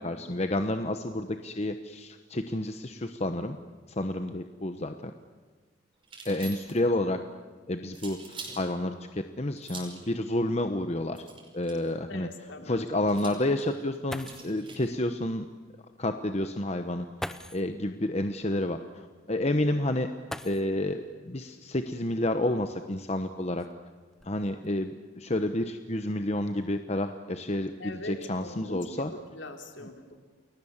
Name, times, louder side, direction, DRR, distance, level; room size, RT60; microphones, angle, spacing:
voice 1, 0.0-3.6 4.0-5.1 6.2-7.2 7.7-11.2 11.5-12.3 12.6-15.4 16.0-17.1 17.5-20.1 20.4-23.6 24.2-29.1, left 1 dB, 35° left, 7 dB, 1.0 m, -30 dB
sound 1, 6.0-6.9 7.9-8.6 9.6-10.0 11.1-11.9 13.1-14.9, right 4 dB, 25° right, 5.6 m, -45 dB
voice 2, 12.1-12.8 27.8-30.2, left 2 dB, 65° left, 4 dB, 3.3 m, -42 dB
sound 2, 14.1-14.7 15.9-16.0 17.2-17.8 20.2-21.0 22.4-22.5 23.2-24.7 25.3-25.7 26.1-26.5, equal, 5° left, 0.8 m, -42 dB
30.0 x 22.0 x 7.3 m, 1.4 s
head